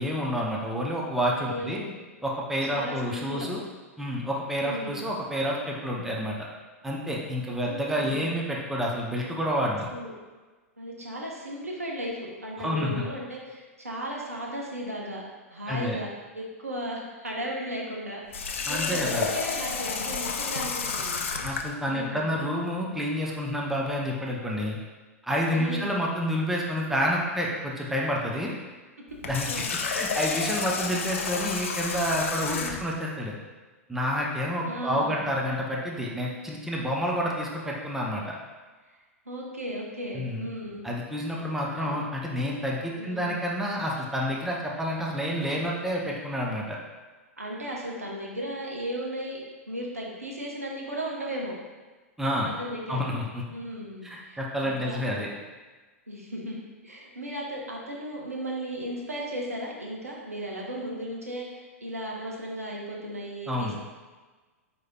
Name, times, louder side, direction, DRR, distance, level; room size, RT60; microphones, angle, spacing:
voice 1, 0.0-1.8 2.2-3.6 4.0-6.5 6.8-9.9 12.6-13.1 15.7-16.0 18.7-19.3 21.4-24.8 25.2-28.5 29.2-33.4 33.9-38.3 40.1-40.5 40.8-46.8 52.2-52.5 52.9-53.4 54.0-55.3 63.5-63.8, equal, 5° right, -3 dB, 0.6 m, -29 dB
voice 2, 1.5-2.0 2.7-3.5 4.6-5.0 7.6-8.3 9.9-10.1 10.8-15.2 15.5-16.1 16.3-18.2 18.7-21.2 21.8-22.3 25.5-25.9 29.5-29.8 32.6-32.8 34.7-35.3 39.3-40.8 41.8-42.0 43.0-43.3 47.4-51.5 52.4-53.0 53.5-55.4 56.1-63.8, equal, 80° right, -2 dB, 0.9 m, -36 dB
Water tap faucet, 18.3-21.7 29.1-32.9, left 5 dB, 60° left, 0.4 m, -31 dB
4.7 x 4.2 x 2.2 m, 1.3 s
figure-of-eight pair, 100°, 8 cm